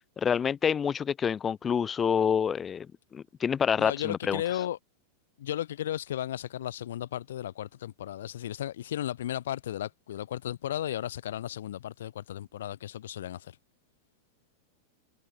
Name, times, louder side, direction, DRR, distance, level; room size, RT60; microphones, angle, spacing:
voice 1, 0.2-2.9 3.1-4.4, left 7 dB, 25° left, 2.8 m, -27 dB
voice 2, 3.8-4.8 5.4-13.6, left 11 dB, 75° left, 7.2 m, -35 dB
hypercardioid pair, 110°, 0 cm